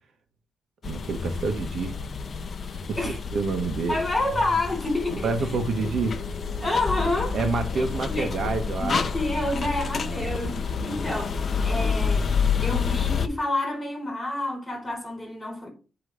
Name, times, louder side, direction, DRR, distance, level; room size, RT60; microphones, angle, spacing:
sound 1, 0.8-13.3, left 5 dB, 40° left, 0.6 m, -29 dB
voice 1, 0.8-1.9 2.7-3.0 3.3-4.0 5.2-6.1 7.3-8.9 10.0-10.3, right 4 dB, 60° right, 1.1 m, -28 dB
voice 2, 3.9-5.3 6.6-7.4 7.8-8.3 8.8-15.7, left 2 dB, 15° left, 4.0 m, -28 dB
8.1 x 3.1 x 6.2 m
cardioid pair, 125°, 0 cm